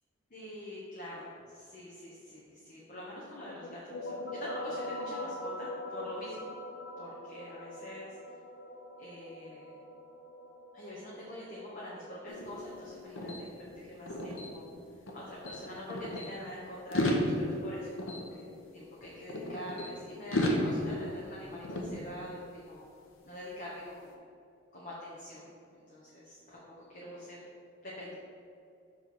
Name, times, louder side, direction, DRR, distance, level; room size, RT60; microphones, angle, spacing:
voice 1, 0.3-6.5 7.0-8.1 9.0-9.8 10.7-14.7 15.1-22.8 23.2-24.2 24.7-25.5 25.7-26.6 26.9-27.4 27.8-28.1, left 1 dB, 45° left, -7 dB, 1.1 m, -45 dB
sound 1, 3.6-13.0, left 1 dB, 60° left, 0.5 m, -43 dB
sound 2, 12.3-15.2 15.4-16.3 16.8-19.9 20.3-22.6, left 1 dB, 80° left, 0.9 m, -35 dB
7.2 x 3.3 x 5.9 m, 2.5 s
head